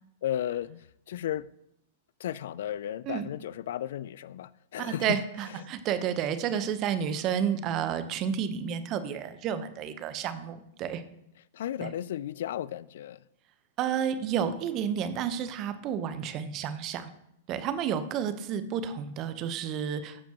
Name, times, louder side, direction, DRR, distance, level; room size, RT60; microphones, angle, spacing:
voice 1, 0.2-1.5 2.2-5.2 5.6-5.7 11.5-13.2, left 11 dB, 70° left, 0.3 m, -34 dB
voice 2, 4.8-11.0 11.8-11.9 13.8-17.1 17.5-20.2, right 8 dB, 40° right, 0.9 m, -31 dB
13.5 x 7.0 x 3.0 m
hypercardioid pair, 110°, 0 cm